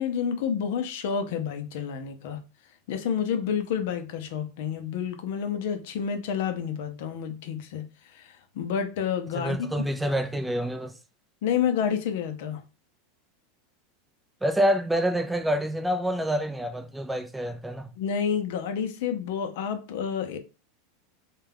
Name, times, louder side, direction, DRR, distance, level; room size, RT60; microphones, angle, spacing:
voice 1, 0.0-2.4 2.9-9.7 11.4-12.6 18.0-20.4, left 7 dB, 70° left, 0.5 m, -29 dB
voice 2, 9.3-10.9 14.4-17.9, equal, 5° right, 0.4 m, -27 dB
2.3 x 2.2 x 3.3 m
supercardioid pair, 125°, 0 cm